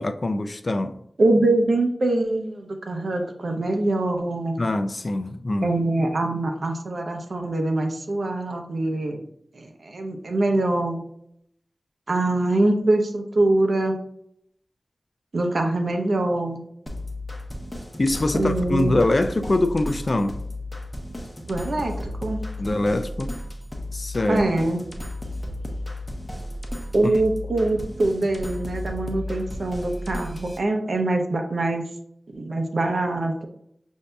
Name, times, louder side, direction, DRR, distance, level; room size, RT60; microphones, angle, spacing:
voice 1, 0.0-1.0 4.6-5.7 18.0-20.4 22.6-23.4 23.9-24.4 27.0-27.2, left 2 dB, 50° left, 0.4 m, -23 dB
voice 2, 1.2-4.6 5.6-9.2 9.5-11.0 12.1-14.0 15.3-16.6 18.3-19.0 21.5-22.4 24.3-24.8 26.9-31.8 32.3-33.4, right 2 dB, 75° right, 0.7 m, -23 dB
sound 1, 16.9-30.6, left 1 dB, 20° left, 0.8 m, -34 dB
6.4 x 2.7 x 2.3 m
wide cardioid pair, 50°, 0 cm